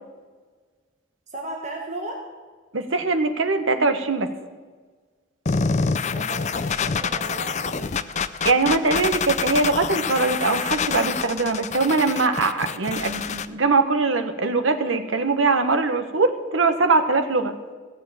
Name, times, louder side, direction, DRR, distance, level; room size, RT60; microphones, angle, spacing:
voice 1, 1.3-2.2 6.1-7.9, right 1 dB, 35° right, -1 dB, 1.7 m, -35 dB
voice 2, 2.7-4.3 8.4-17.5, right 3 dB, 70° right, 7 dB, 1.3 m, -22 dB
sound 1, 5.5-13.5, left 5 dB, 35° left, 0.5 m, -26 dB
15.5 x 7.4 x 8.7 m, 1.4 s
head